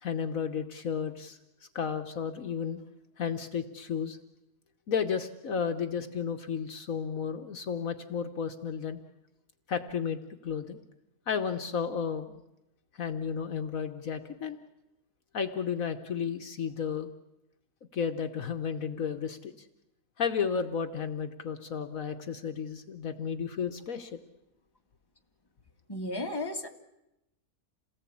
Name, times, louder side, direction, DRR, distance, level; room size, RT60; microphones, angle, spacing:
voice 1, 0.0-1.4 1.7-2.8 3.2-4.2 4.9-9.0 9.7-10.8 11.3-12.4 12.9-14.6 15.3-17.1 17.9-19.5 20.2-24.2, left 6 dB, 65° left, 8 dB, 1.5 m, -33 dB
voice 2, 25.9-26.7, left 1 dB, 15° left, 3 dB, 1.8 m, -34 dB
28.0 x 18.5 x 8.6 m, 0.91 s
omnidirectional pair, 1.6 m